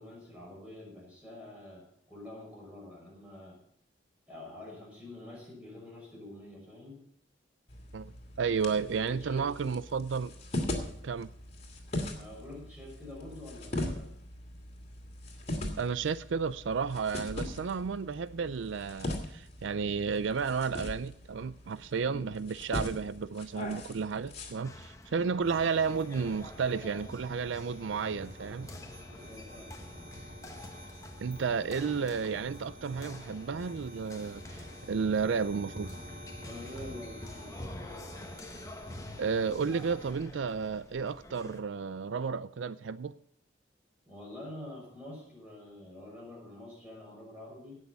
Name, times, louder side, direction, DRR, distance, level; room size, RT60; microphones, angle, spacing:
voice 1, 0.0-3.6 4.3-7.0 8.7-9.7 12.1-14.1 22.0-22.3 29.2-30.1 36.4-37.8 44.1-47.8, left 1 dB, 5° right, 5.8 m, -47 dB
sound 1, 7.7-24.5, left 1 dB, 35° left, 2.5 m, -40 dB
voice 2, 8.4-10.3 11.0-11.3 15.8-28.7 31.2-35.9 39.2-43.2, right 5 dB, 80° right, 0.4 m, -32 dB
sound 2, 24.6-41.6, left 1 dB, 15° left, 1.1 m, -48 dB
sound 3, 25.4-40.1, equal, 40° right, 3.4 m, -49 dB
17.5 x 6.5 x 6.9 m
head